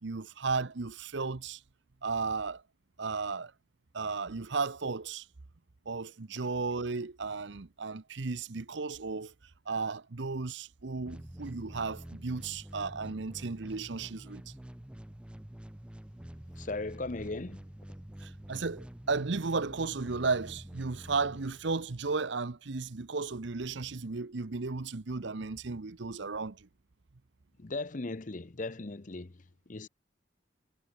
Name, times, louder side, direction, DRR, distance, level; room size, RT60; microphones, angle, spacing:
voice 1, 0.0-1.6 2.0-2.6 3.0-3.5 3.9-5.3 5.9-9.3 9.7-14.5 18.2-26.7, right 4 dB, 65° right, 0.8 m, -34 dB
sound 1, 11.1-22.0, equal, 5° right, 0.4 m, -47 dB
voice 2, 16.5-17.7 27.6-29.9, left 2 dB, 40° left, 0.7 m, -38 dB
head